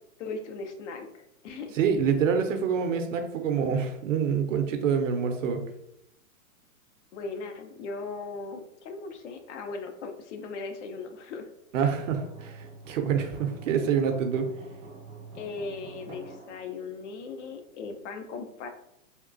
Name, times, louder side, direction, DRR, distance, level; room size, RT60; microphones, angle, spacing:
voice 1, 0.2-1.1 1.4-1.8 7.1-11.5 15.3-18.7, left 4 dB, 60° left, 6 dB, 0.6 m, -38 dB
voice 2, 1.8-5.6 11.7-14.5, right 7 dB, 65° right, 5 dB, 0.7 m, -26 dB
sound 1, 11.8-16.7, right 3 dB, 15° right, 0.4 m, -46 dB
3.5 x 2.3 x 2.5 m, 0.79 s
hypercardioid pair, 125°, 42 cm